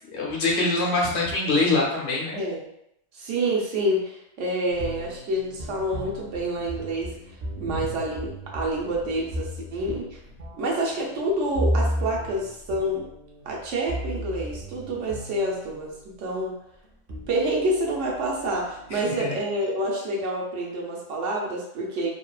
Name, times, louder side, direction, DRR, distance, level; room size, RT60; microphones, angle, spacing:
voice 1, 0.1-2.4 7.7-7.9 18.9-19.4, left 2 dB, 65° left, -3 dB, 0.9 m, -24 dB
voice 2, 2.3-2.7 3.1-7.1 7.6-10.2 10.6-13.0 13.5-16.6 17.3-22.1, right 1 dB, 80° right, -2 dB, 1.0 m, -28 dB
sound 1, 4.7-16.2 16.8-19.2, equal, 55° right, 0.5 m, -34 dB
2.8 x 2.3 x 2.2 m, 0.78 s
omnidirectional pair, 1.2 m